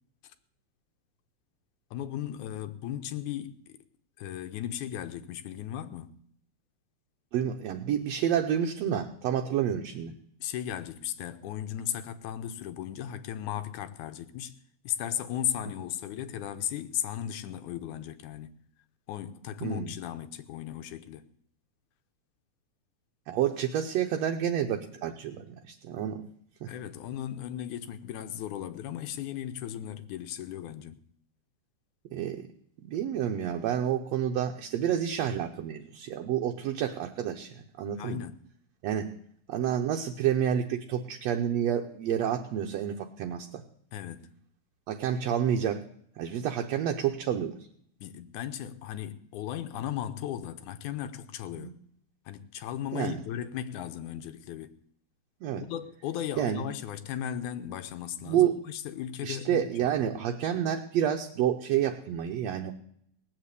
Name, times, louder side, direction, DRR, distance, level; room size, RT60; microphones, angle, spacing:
voice 1, 1.9-3.8 4.2-6.2 10.4-14.6 14.8-18.5 19.1-21.2 26.7-31.0 38.0-38.3 43.9-44.3 48.0-51.7 52.3-54.7 55.6-59.9, left 10 dB, 80° left, 2.2 m, -36 dB
voice 2, 7.3-10.1 19.6-19.9 23.3-26.2 26.6-26.7 32.1-32.5 32.8-38.2 38.8-39.1 39.5-43.6 44.9-45.8 46.2-47.6 51.6-51.7 52.9-53.2 55.4-55.6 56.4-56.6 58.3-58.6 59.2-62.7, right 9 dB, 70° right, 1.9 m, -29 dB
18.5 x 7.5 x 8.3 m
omnidirectional pair, 3.5 m